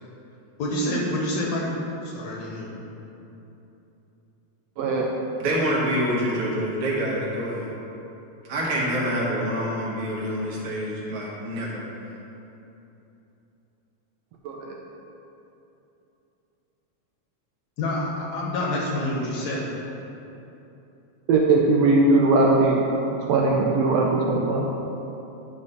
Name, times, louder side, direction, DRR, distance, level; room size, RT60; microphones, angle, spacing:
voice 1, 0.6-1.8 2.0-2.7 17.8-19.7, left 1 dB, 70° left, -2 dB, 2.0 m, -27 dB
voice 2, 4.8-5.1 14.4-14.7 21.3-22.9 23.3-24.7, right 3 dB, 75° right, -1 dB, 1.6 m, -20 dB
voice 3, 5.4-7.7 8.5-11.8, equal, 60° right, -5 dB, 2.1 m, -26 dB
9.6 x 3.2 x 5.5 m, 2.9 s
omnidirectional pair, 3.3 m